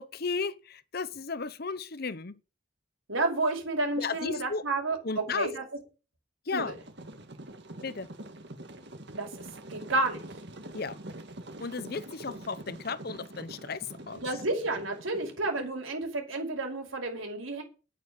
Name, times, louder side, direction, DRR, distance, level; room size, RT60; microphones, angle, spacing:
voice 1, 0.0-2.4 4.0-4.6 5.0-5.5 6.5-6.7 7.8-8.1 10.7-11.0 11.6-14.3, left 4 dB, 50° left, 0.8 m, -34 dB
voice 2, 3.1-5.6 6.5-6.7 9.2-10.2 14.1-17.6, right 2 dB, 90° right, 5.1 m, -31 dB
sound 1, 6.6-15.7, right 1 dB, 60° right, 1.8 m, -45 dB
9.9 x 9.0 x 7.3 m
head